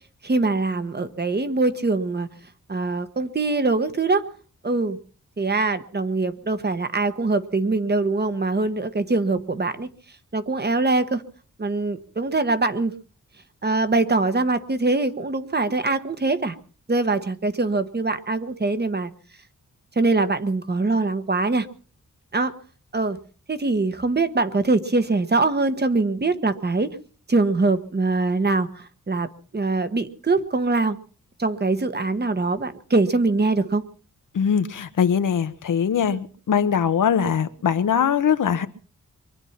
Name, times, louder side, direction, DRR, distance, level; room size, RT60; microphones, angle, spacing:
voice 1, 0.2-2.3 2.7-4.2 4.6-5.0 5.4-9.9 10.3-11.2 11.6-12.9 13.6-16.5 16.9-19.1 20.0-21.7 22.3-22.5 22.9-23.2 23.5-26.9 27.3-29.3 29.5-31.0 31.4-33.8, right 3 dB, 35° right, 11 dB, 1.4 m, -23 dB
voice 2, 34.3-38.7, left 7 dB, 85° left, 10 dB, 1.3 m, -21 dB
23.5 x 10.0 x 5.8 m, 0.43 s
wide cardioid pair, 110°, 31 cm